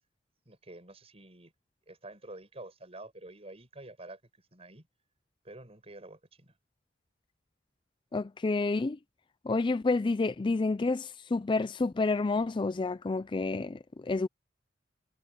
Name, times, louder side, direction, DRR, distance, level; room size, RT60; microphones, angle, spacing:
voice 1, 0.4-1.5 1.9-4.2 4.5-4.9 5.4-6.6, right 2 dB, 35° right, 6.7 m, -48 dB
voice 2, 8.1-9.0 9.4-14.3, left 3 dB, 25° left, 0.4 m, -29 dB
head